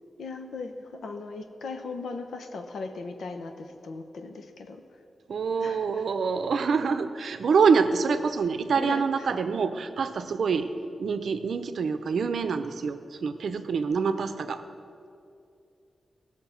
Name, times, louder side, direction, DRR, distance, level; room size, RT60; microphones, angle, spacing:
voice 1, 0.2-4.8 5.6-6.1 8.8-9.3, left 3 dB, 85° left, 6 dB, 0.9 m, -38 dB
voice 2, 5.3-10.7 11.0-14.6, right 5 dB, 80° right, 9 dB, 0.6 m, -26 dB
17.0 x 6.4 x 5.8 m, 2.5 s
wide cardioid pair, 120°, 0 cm